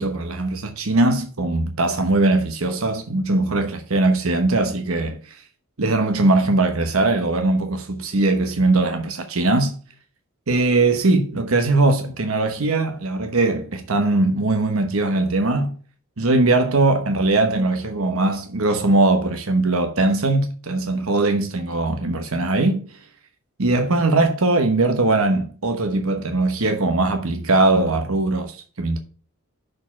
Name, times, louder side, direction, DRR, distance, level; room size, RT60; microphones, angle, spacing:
voice 1, 0.0-5.4 5.8-9.8 10.5-15.7 16.2-22.8 23.6-28.5 28.8-29.0, right 2 dB, 85° right, 1.0 m, -20 dB
6.4 x 4.8 x 5.9 m
head